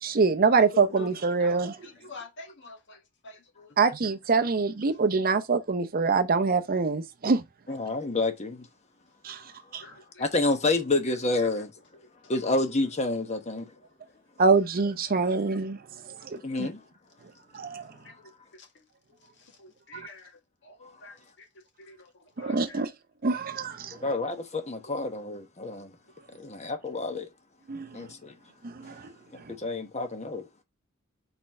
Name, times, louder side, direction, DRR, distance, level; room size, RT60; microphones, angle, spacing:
voice 1, 0.0-1.7 3.8-7.4 9.2-9.4 9.7-9.8 14.4-15.8 16.6-16.7 17.5-17.8 22.4-22.9 23.2-23.9 27.7-27.9 28.6-28.9, right 4 dB, 40° right, 0.6 m, -24 dB
voice 2, 1.4-3.9 9.8-10.3 11.0-11.1 11.4-11.5 13.8-13.9 16.6-16.7 18.0-18.8 19.1-21.5 21.8-22.9 26.3-26.4, left 3 dB, 55° left, 1.7 m, -49 dB
voice 3, 7.7-8.7 10.2-11.7 12.3-13.7 16.3-16.8 23.9-25.9 26.4-27.3 27.9-28.3 29.3-30.4, left 2 dB, 30° left, 1.2 m, -29 dB
4.5 x 4.2 x 5.3 m
head